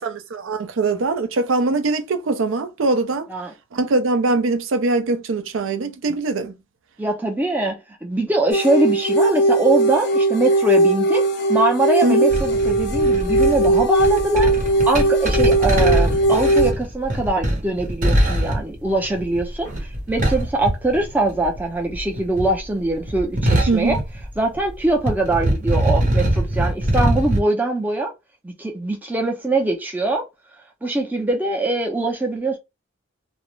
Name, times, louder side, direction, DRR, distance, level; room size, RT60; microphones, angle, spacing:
voice 1, 0.0-3.3 3.7-6.5 12.0-12.3 23.7-24.0, right 3 dB, 65° right, 0.5 m, -22 dB
voice 2, 7.0-14.6 14.9-24.0 24.4-28.1 28.4-30.2 30.8-32.6, right 2 dB, 10° right, 0.5 m, -22 dB
sound 1, 8.5-16.7, right 1 dB, 50° left, 0.5 m, -19 dB
sound 2, 12.3-21.6 21.8-24.7 25.0-27.4, right 1 dB, 40° right, 0.8 m, -22 dB
2.4 x 2.0 x 3.0 m
head